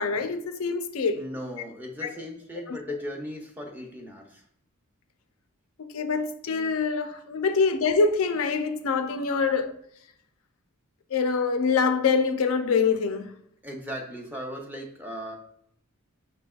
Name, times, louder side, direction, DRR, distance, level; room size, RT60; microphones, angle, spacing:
voice 1, 0.0-1.2 2.7-2.8 5.8-9.7 11.1-13.4, left 5 dB, 75° left, 0.4 m, -25 dB
voice 2, 1.1-4.4 13.6-15.4, equal, 10° right, 0.7 m, -37 dB
5.6 x 3.2 x 2.3 m
head